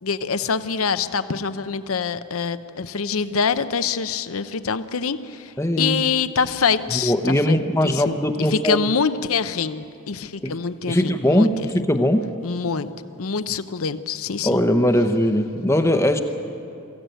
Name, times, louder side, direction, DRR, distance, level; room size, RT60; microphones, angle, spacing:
voice 1, 0.0-7.6 7.8-11.5 12.4-12.9 13.2-14.6, left 5 dB, 75° left, 12 dB, 0.7 m, -25 dB
voice 2, 5.6-6.0 6.9-8.8 10.4-10.6 10.9-12.3 14.4-16.2, left 1 dB, 10° left, 7 dB, 0.8 m, -20 dB
24.0 x 15.0 x 9.1 m, 2.6 s
head